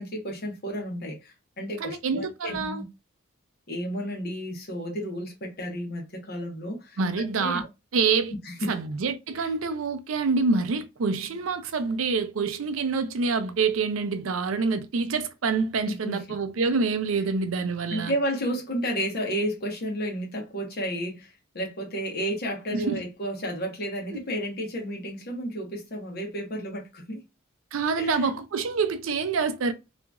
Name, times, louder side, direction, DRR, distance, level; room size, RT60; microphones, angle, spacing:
voice 1, 0.0-2.8 3.7-7.0 7.4-7.7 8.4-8.7 9.4-9.5 15.9-16.4 17.9-27.2 28.0-28.3, equal, 50° left, 1.0 m, -32 dB
voice 2, 1.8-2.8 7.0-7.6 7.9-8.3 8.7-18.1 22.7-23.0 27.7-29.7, right 4 dB, 80° right, 0.5 m, -26 dB
2.8 x 2.4 x 2.3 m
head